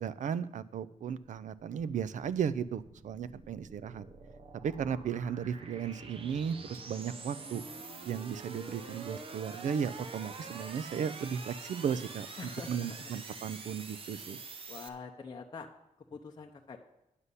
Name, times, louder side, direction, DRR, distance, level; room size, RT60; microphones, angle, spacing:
voice 1, 0.0-4.0 4.6-7.6 8.1-14.4, right 7 dB, 75° right, 15 dB, 0.5 m, -35 dB
sound 1, 2.3-14.9, right 4 dB, 45° right, 0.9 m, -46 dB
voice 2, 12.4-13.1 14.7-15.7 16.1-16.8, left 5 dB, 35° left, 2 dB, 0.7 m, -45 dB
9.8 x 5.5 x 8.1 m, 0.91 s
wide cardioid pair, 175°, 13 cm